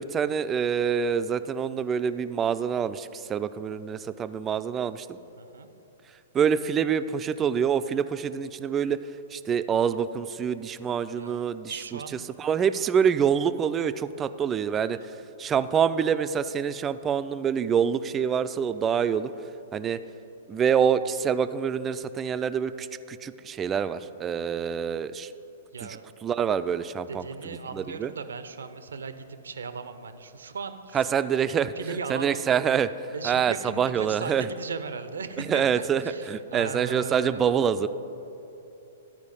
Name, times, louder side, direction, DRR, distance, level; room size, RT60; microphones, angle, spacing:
voice 1, 0.0-5.1 6.3-9.0 9.3-11.7 12.4-15.0 15.4-19.3 19.7-20.0 20.5-25.3 26.2-27.2 27.7-28.1 30.9-31.7 32.1-32.9 33.2-34.5 35.5-36.0 36.3-37.9, right 7 dB, 20° right, 12 dB, 0.3 m, -26 dB
voice 2, 5.4-5.7 11.2-12.3 25.7-26.0 27.1-31.0 31.8-32.4 33.1-37.6, right 5 dB, 75° right, 10 dB, 0.5 m, -37 dB
11.0 x 4.7 x 5.3 m, 3.0 s
figure-of-eight pair, 115°, 0 cm